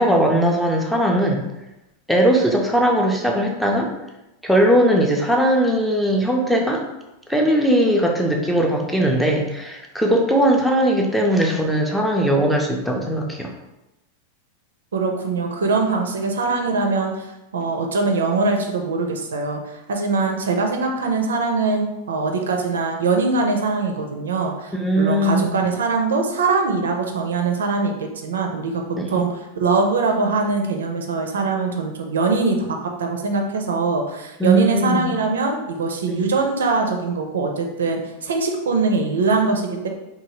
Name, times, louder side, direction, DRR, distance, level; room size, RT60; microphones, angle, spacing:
voice 1, 0.0-1.4 2.1-3.9 4.4-6.8 7.3-13.5 24.7-25.5 34.4-35.1 36.1-36.2, right 1 dB, ahead, 0 dB, 0.4 m, -19 dB
voice 2, 14.9-28.8 29.1-39.9, right 4 dB, 65° right, 3 dB, 0.4 m, -22 dB
3.0 x 2.2 x 2.9 m, 0.94 s
figure-of-eight pair, 90°, 0 cm